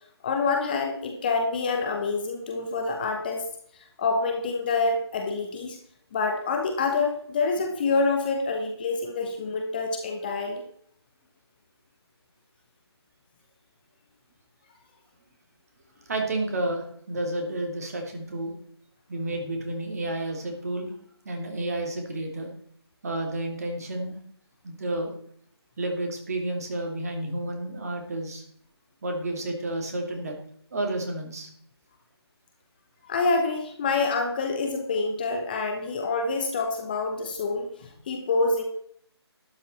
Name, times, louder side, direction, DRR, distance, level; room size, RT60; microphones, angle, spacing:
voice 1, 0.2-3.4 4.0-5.8 6.1-10.6 33.0-38.6, left 3 dB, 20° left, 4 dB, 1.2 m, -27 dB
voice 2, 16.1-18.5 19.1-20.9 21.2-22.5 23.0-24.2 24.6-25.1 25.8-28.4 29.0-30.3 30.7-31.5, right 1 dB, 35° right, 3 dB, 2.9 m, -31 dB
12.0 x 9.8 x 4.3 m, 0.64 s
figure-of-eight pair, 155°, 14 cm